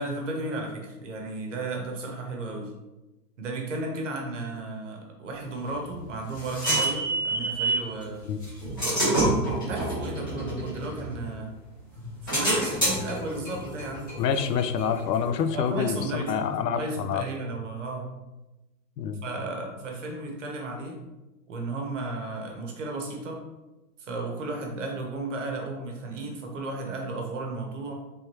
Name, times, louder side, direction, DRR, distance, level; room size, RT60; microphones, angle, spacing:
voice 1, 0.0-2.7 3.4-8.2 9.0-11.5 12.2-14.2 15.5-18.1 19.2-21.0 21.5-23.4 24.0-27.9, right 2 dB, 50° right, 2 dB, 0.8 m, -34 dB
sound 1, 5.7-7.9 8.4-11.5 11.9-15.4, right 1 dB, 15° left, 0.5 m, -28 dB
voice 2, 14.2-17.2 19.0-19.2, left 7 dB, 85° left, 9 dB, 0.6 m, -27 dB
3.4 x 3.3 x 2.9 m, 1.0 s
hypercardioid pair, 170°, 48 cm